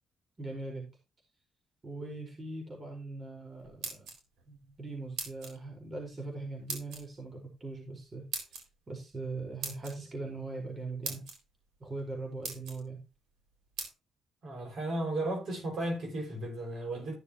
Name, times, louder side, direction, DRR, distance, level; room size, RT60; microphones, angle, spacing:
voice 1, 0.4-0.9 1.8-4.1 4.5-8.3 8.9-11.2 11.8-13.0, right 3 dB, 35° right, 4.7 m, -40 dB
sound 1, 3.6-4.4 5.2-5.6 6.7-7.0 8.3-8.6 9.6-9.9 10.7-10.8 11.0-11.4 12.0-12.1 12.4-12.8 13.8-13.9, right 5 dB, 80° right, 3.8 m, -39 dB
voice 2, 14.4-17.1, right 1 dB, 60° right, 5.8 m, -34 dB
14.5 x 6.9 x 3.0 m
cardioid pair, 90°, 0 cm